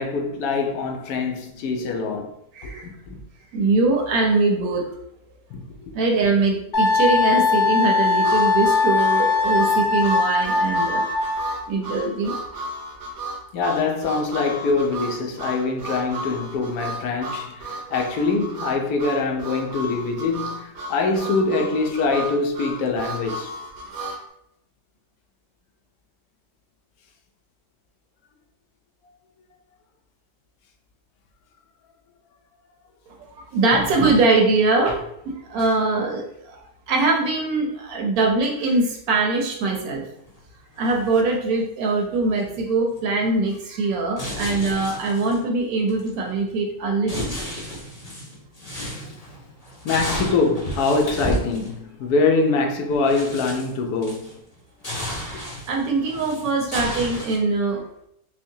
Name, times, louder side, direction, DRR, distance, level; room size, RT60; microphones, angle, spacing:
voice 1, 0.0-2.3 2.6-3.2 5.5-5.9 13.5-23.5 49.8-54.3, left 3 dB, 80° left, 1.1 m, -24 dB
voice 2, 2.5-2.9 3.5-4.8 5.9-11.0 11.7-12.3 33.2-35.0 35.5-36.6 36.9-40.0 40.8-47.3 55.2-57.8, right 3 dB, 75° right, 1.2 m, -22 dB
Wind instrument woodwind instrument, 6.7-11.6, left 4 dB, 55° left, 1.1 m, -20 dB
Harmonica, 8.2-24.2, right 1 dB, 55° right, 0.8 m, -34 dB
sound 1, 39.9-40.0 40.3-40.4 40.8-41.5 42.5-42.6 43.0-43.4 44.2-45.5 45.9-46.7 47.1-51.8 52.5-52.6 52.8-54.6 54.8-57.4, equal, 30° left, 0.9 m, -33 dB
4.5 x 2.1 x 2.7 m
omnidirectional pair, 1.6 m